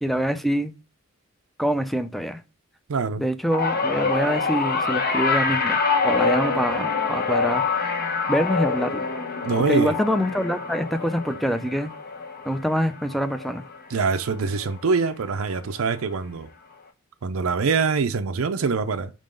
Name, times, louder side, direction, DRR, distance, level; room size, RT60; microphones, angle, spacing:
voice 1, 0.0-0.7 1.6-2.4 3.2-5.8 6.0-7.6 8.3-9.1 9.6-11.9 12.5-13.6, equal, ahead, 0.4 m, -25 dB
voice 2, 2.9-3.2 9.4-10.0 13.9-16.5 17.2-19.1, right 5 dB, 75° right, 0.5 m, -24 dB
sound 1, 3.5-14.0 14.3-14.7 15.8-15.9, left 4 dB, 45° left, 0.8 m, -26 dB
5.1 x 3.7 x 5.1 m
head